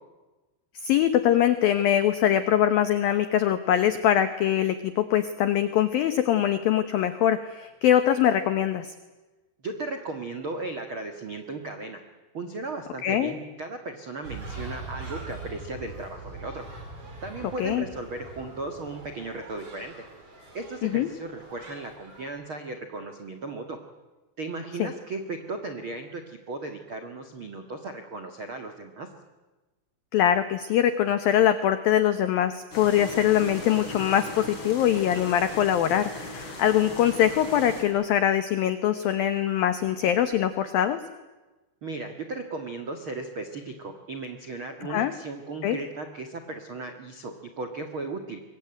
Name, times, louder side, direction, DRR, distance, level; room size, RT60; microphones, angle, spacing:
voice 1, 0.8-8.9 13.0-13.3 17.6-17.8 20.8-21.1 24.8-24.9 30.1-41.0 44.9-45.1 45.6-45.8, left 10 dB, 80° left, 11 dB, 2.0 m, -23 dB
voice 2, 9.6-12.0 12.3-16.6 17.2-19.9 20.5-23.8 24.4-29.1 41.8-48.4, right 3 dB, 75° right, 6 dB, 1.1 m, -36 dB
sound 1, 14.2-22.2, right 2 dB, 30° right, 5.7 m, -42 dB
sound 2, 32.7-37.8, left 1 dB, 25° left, 4.5 m, -39 dB
26.0 x 23.5 x 9.1 m, 1.2 s
omnidirectional pair, 5.7 m